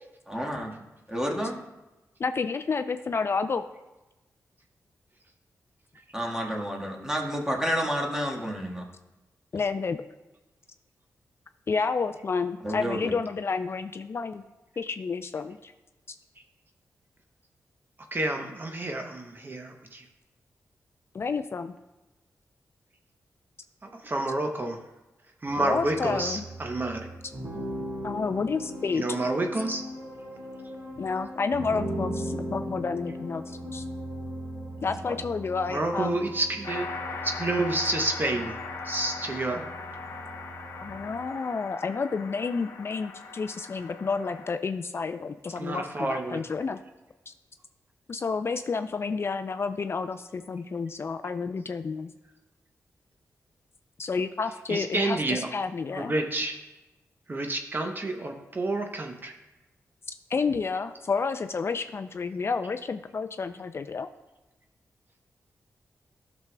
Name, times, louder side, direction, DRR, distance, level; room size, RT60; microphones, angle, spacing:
voice 1, 0.3-0.8 1.1-1.6 6.1-8.8 12.6-13.1 34.8-35.1, equal, 10° right, 0 dB, 1.4 m, -30 dB
voice 2, 2.2-3.6 9.5-10.0 11.7-14.4 14.8-15.7 16.1-16.2 21.1-21.7 25.6-26.5 28.0-29.1 31.0-33.8 34.8-36.2 40.8-46.8 47.3-47.4 48.1-52.1 54.0-56.1 60.3-64.1, left 4 dB, 45° left, 9 dB, 0.3 m, -30 dB
voice 3, 18.1-20.0 23.8-24.8 25.4-27.1 29.0-29.8 35.7-36.9 37.2-38.6 38.8-39.6 45.6-46.4 54.7-55.5 55.9-56.6 57.3-59.3, right 2 dB, 35° right, 3 dB, 0.7 m, -29 dB
sound 1, 25.5-41.3, equal, 70° right, 2.3 m, -38 dB
sound 2, 36.6-44.5, left 4 dB, 65° left, 1.0 m, -39 dB
12.0 x 6.1 x 2.2 m, 1.1 s
cardioid pair, 65°, 6 cm